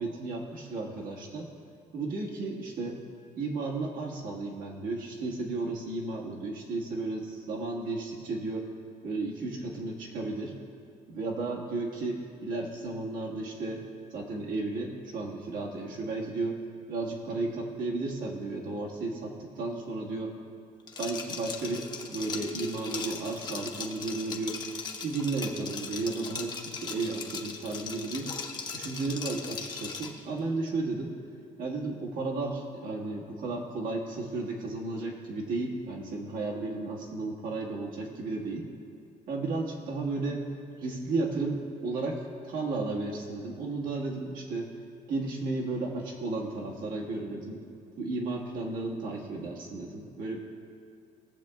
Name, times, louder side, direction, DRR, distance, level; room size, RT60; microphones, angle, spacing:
voice 1, 0.0-1.5 1.9-3.0 3.4-8.7 9.0-10.5 11.1-13.8 14.1-16.6 16.9-20.4 21.0-24.6 25.0-28.3 28.7-31.2 31.6-38.7 39.3-40.5 40.8-44.7 45.1-47.6 48.0-50.4, right 3 dB, 70° right, -1 dB, 1.6 m, -33 dB
Liquid, 20.9-30.2, left 5 dB, 30° left, 0.8 m, -39 dB
19.5 x 7.4 x 2.3 m, 2.5 s
cardioid pair, 160°, 14 cm